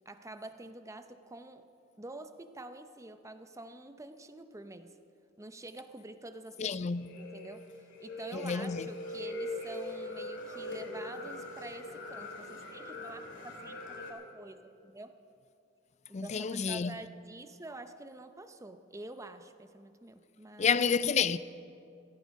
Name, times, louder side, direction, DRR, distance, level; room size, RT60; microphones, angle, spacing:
voice 1, 0.1-1.7 2.0-5.0 5.4-6.8 7.2-15.2 16.1-20.8, right 2 dB, 15° right, 0.6 m, -47 dB
voice 2, 6.6-7.1 8.3-8.9 16.1-17.0 20.6-21.4, left 6 dB, 35° left, 0.4 m, -29 dB
sound 1, 6.9-14.1, left 1 dB, 65° left, 2.3 m, -41 dB
16.5 x 13.0 x 5.3 m
head